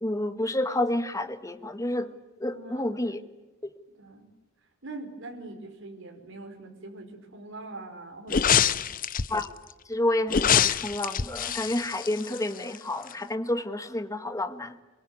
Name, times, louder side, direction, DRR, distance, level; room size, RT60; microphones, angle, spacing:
voice 1, 0.0-2.1 2.4-3.2 9.3-9.5 9.9-14.7, left 1 dB, 15° left, 9 dB, 1.6 m, -29 dB
voice 2, 2.4-3.4 4.0-4.3 4.8-8.8, right 2 dB, 65° right, 3 dB, 4.9 m, -43 dB
sound 1, 8.3-9.4 10.3-12.8 13.1-13.2, left 8 dB, 40° left, 0.8 m, -25 dB
24.5 x 23.0 x 9.5 m, 1.1 s
head